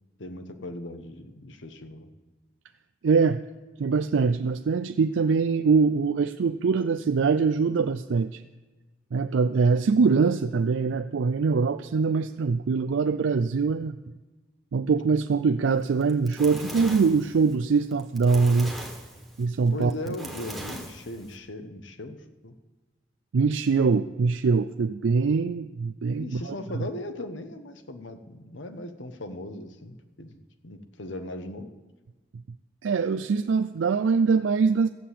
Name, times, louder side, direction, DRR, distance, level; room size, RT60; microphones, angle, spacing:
voice 1, 0.2-2.1 16.5-16.8 19.7-22.2 22.4-22.5 26.2-31.7, left 1 dB, 85° left, 8 dB, 1.1 m, -38 dB
voice 2, 3.0-3.4 3.8-8.4 9.1-14.0 14.7-18.7 19.4-19.9 23.3-26.5 32.8-34.9, right 5 dB, 85° right, 9 dB, 0.4 m, -23 dB
Fire, 15.9-21.4, right 1 dB, ahead, 1.4 m, -40 dB
14.0 x 7.6 x 8.4 m, 1.2 s
head